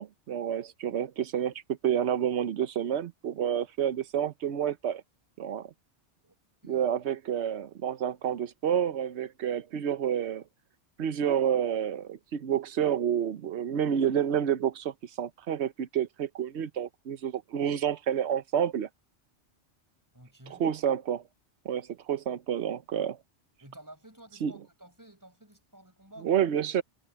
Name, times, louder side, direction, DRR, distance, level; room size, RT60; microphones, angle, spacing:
voice 1, 0.0-5.0 5.4-5.7 6.7-10.4 11.0-18.9 20.6-21.2 21.6-23.2 24.4-24.5 26.2-26.8, right 9 dB, 65° right, 1.1 m, -29 dB
voice 2, 20.1-20.7 23.6-26.4, right 1 dB, 15° right, 5.4 m, -52 dB
omnidirectional pair, 1.2 m